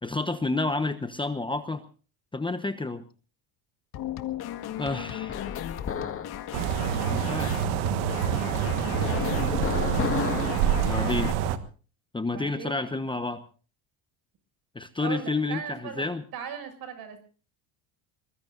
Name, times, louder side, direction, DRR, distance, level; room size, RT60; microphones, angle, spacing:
voice 1, 0.0-1.8 2.3-3.0 4.8-5.4 7.1-7.5 10.8-11.3 12.1-13.4 14.7-16.2, left 3 dB, 10° left, 10 dB, 1.1 m, -30 dB
sound 1, 3.9-11.3, left 12 dB, 60° left, 1.9 m, -37 dB
sound 2, 5.3-6.4 8.9-10.7, left 6 dB, 30° left, 1.9 m, -31 dB
sound 3, 6.5-11.6, right 9 dB, 90° right, 1.6 m, -27 dB
voice 2, 12.2-12.8 15.0-16.1 16.3-17.2, right 8 dB, 55° right, 9 dB, 6.9 m, -38 dB
24.0 x 22.0 x 2.6 m, 0.38 s
supercardioid pair, 105°, 42 cm